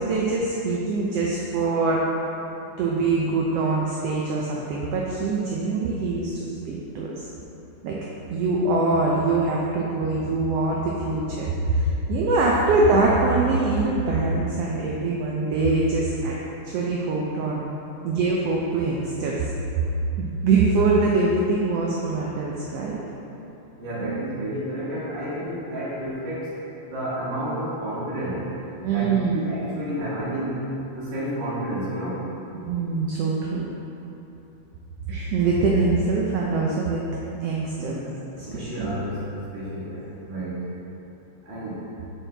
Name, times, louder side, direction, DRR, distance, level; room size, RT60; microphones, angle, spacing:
voice 1, 0.0-2.0 2.8-7.3 7.8-8.0 8.3-16.3 16.6-17.6 18.0-19.4 20.2-23.0 28.8-29.4 32.6-33.6 35.1-37.0 37.4-37.9 38.5-38.9, right 3 dB, 85° right, -3 dB, 1.3 m, -23 dB
voice 2, 23.8-26.6 26.8-28.4 28.9-30.7 30.9-32.2 35.7-35.8 37.8-38.1 38.4-40.7 41.4-41.9, right 1 dB, 40° right, -8 dB, 0.9 m, -31 dB
7.6 x 4.5 x 3.3 m, 3.0 s
omnidirectional pair, 3.4 m